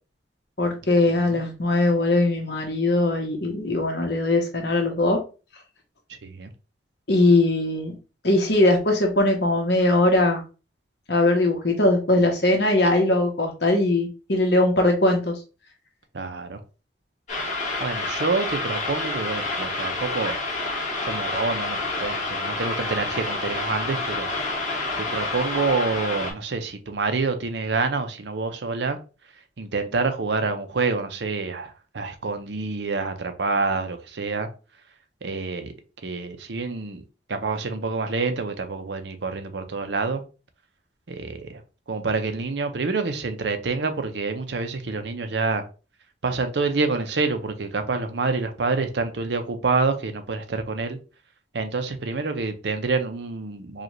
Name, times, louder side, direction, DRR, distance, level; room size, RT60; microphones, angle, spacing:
voice 1, 0.6-5.2 7.1-7.9 8.2-10.4 11.1-15.3, left 2 dB, 65° left, 1.2 m, -20 dB
voice 2, 1.1-1.4 6.1-6.5 16.1-16.6 17.8-20.4 21.0-24.4 25.0-29.0 29.6-34.5 35.2-35.7 36.0-37.0 37.3-40.2 41.1-41.6 41.9-45.6 46.2-51.0 51.5-53.8, right 4 dB, 70° right, 0.7 m, -27 dB
sound 1, 17.3-26.3, left 2 dB, 40° left, 1.3 m, -28 dB
4.9 x 2.4 x 3.0 m
head